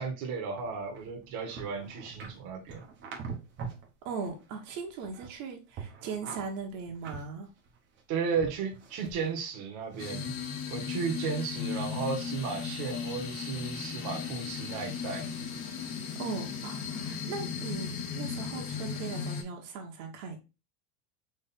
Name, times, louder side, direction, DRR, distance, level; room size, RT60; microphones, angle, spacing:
voice 1, 0.0-2.8 8.1-10.3 10.7-15.3, right 5 dB, 45° right, 2 dB, 1.3 m, -34 dB
sound 1, 0.6-3.9 4.2-5.4 5.7-8.0 8.4-9.4 9.9-10.1, right 5 dB, 25° right, 0.9 m, -44 dB
voice 2, 4.0-7.5 16.2-20.4, right 5 dB, 60° right, 1 dB, 1.3 m, -39 dB
sound 2, 10.0-19.4, left 6 dB, 85° left, 1.5 m, -36 dB
4.3 x 3.2 x 3.6 m, 0.29 s
supercardioid pair, 160°, 41 cm